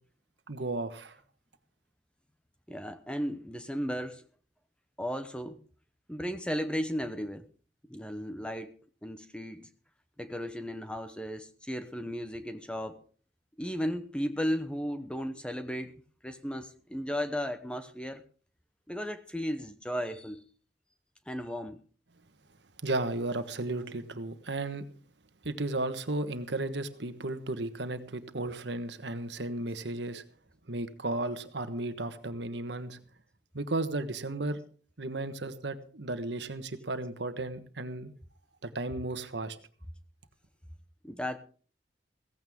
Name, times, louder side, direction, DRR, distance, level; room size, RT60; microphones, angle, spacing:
voice 1, 0.5-1.2 22.8-24.8 25.4-30.2 30.7-33.0 33.5-34.6 35.0-38.1 38.6-39.6, right 2 dB, 75° right, 1.3 m, -34 dB
voice 2, 2.7-4.2 5.0-5.6 6.1-7.5 7.9-9.7 10.2-13.0 13.6-15.9 16.2-18.2 18.9-20.4 21.3-21.8 41.0-41.4, equal, 5° left, 0.9 m, -35 dB
16.5 x 15.5 x 3.7 m
head